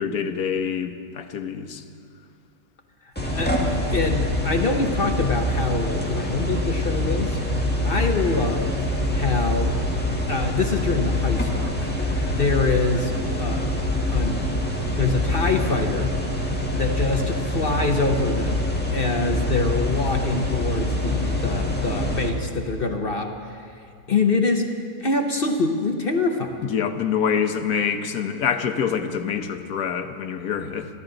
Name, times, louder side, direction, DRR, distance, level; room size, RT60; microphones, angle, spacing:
voice 1, 0.0-1.8 26.6-30.9, left 7 dB, 75° left, 7 dB, 1.4 m, -26 dB
voice 2, 3.0-7.4 7.8-11.8 12.3-13.8 14.1-14.5 14.9-16.1 16.7-24.7 25.0-26.6, left 3 dB, 45° left, 4 dB, 1.0 m, -25 dB
sound 1, 3.2-22.3, left 1 dB, 5° left, 1.6 m, -25 dB
29.5 x 12.0 x 3.9 m, 2.3 s
omnidirectional pair, 1.6 m